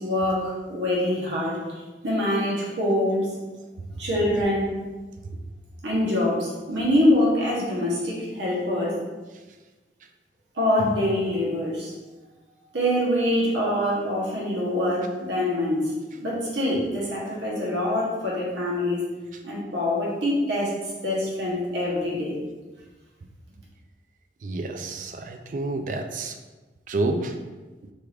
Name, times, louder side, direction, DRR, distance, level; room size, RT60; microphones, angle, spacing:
voice 1, 0.0-1.6 2.0-3.3 4.0-4.7 5.8-9.0 10.5-11.9 12.7-15.9 16.2-19.0 19.4-20.7 21.0-22.4, left 1 dB, 85° right, -5 dB, 1.0 m, -24 dB
voice 2, 24.4-26.3 26.9-27.3, right 2 dB, 45° right, 6 dB, 0.3 m, -29 dB
4.5 x 2.4 x 3.3 m, 1.2 s
head